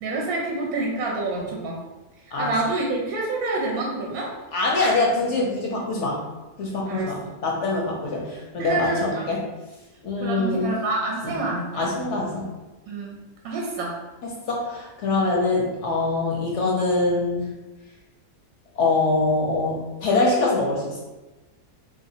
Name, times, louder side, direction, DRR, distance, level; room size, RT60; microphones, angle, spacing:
voice 1, 0.0-1.8 2.4-4.3 6.9-7.1 8.6-9.3 10.2-11.9 12.9-13.2 13.4-13.9 15.2-15.4, right 2 dB, 75° right, -2 dB, 1.0 m, -27 dB
voice 2, 4.5-6.2 6.6-9.4 10.0-10.7 11.2-11.3 11.7-12.5 14.5-17.4 18.8-21.0, left 3 dB, 65° left, -2 dB, 0.7 m, -24 dB
3.3 x 2.8 x 2.7 m, 1.1 s
omnidirectional pair, 1.7 m